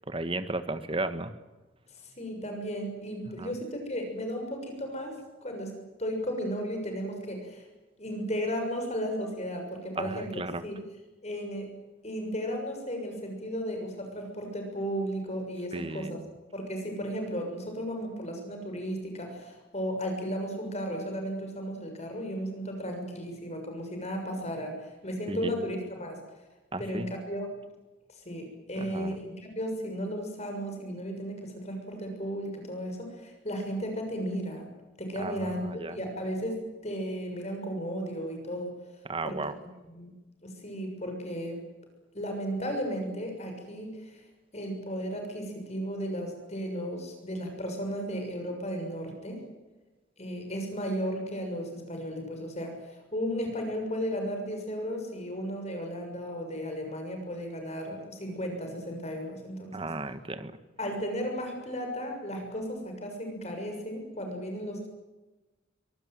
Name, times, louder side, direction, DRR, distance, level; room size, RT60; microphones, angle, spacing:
voice 1, 0.1-1.3 3.4-3.5 9.9-10.6 15.7-16.2 25.3-25.5 26.7-27.1 28.8-29.2 35.2-36.0 39.1-39.5 59.7-60.5, right 2 dB, 25° right, 11 dB, 1.6 m, -34 dB
voice 2, 2.0-5.7 6.0-7.7 8.0-10.8 11.2-11.7 12.0-16.2 16.5-26.2 26.8-27.6 28.2-34.7 35.0-35.6 35.9-38.7 39.2-39.4 39.9-40.1 40.4-41.6 42.1-44.2 44.5-49.4 50.2-59.9 60.8-64.9, equal, 35° left, 3 dB, 6.7 m, -35 dB
24.0 x 19.0 x 9.4 m, 1.1 s
head